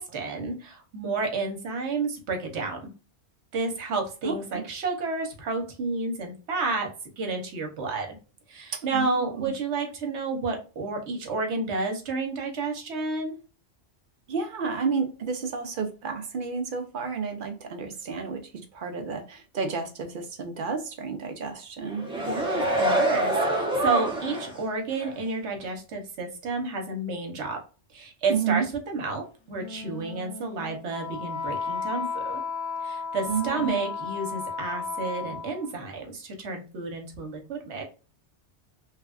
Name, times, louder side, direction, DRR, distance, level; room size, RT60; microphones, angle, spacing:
voice 1, 0.0-2.9 3.5-6.9 7.2-8.2 8.5-13.4 22.1-27.6 27.9-28.7 28.9-32.4 32.8-37.8, right 3 dB, 80° right, 1.1 m, -31 dB
voice 2, 4.2-4.6 8.7-9.5 14.3-22.0 28.3-28.7 33.3-33.9, right 5 dB, 60° right, 0.6 m, -31 dB
sound 1, 21.8-24.6 25.0-25.1, right 1 dB, 5° right, 0.8 m, -26 dB
Wind instrument woodwind instrument, 29.5-35.7, left 5 dB, 50° left, 0.3 m, -34 dB
3.2 x 2.3 x 2.3 m
omnidirectional pair, 1.2 m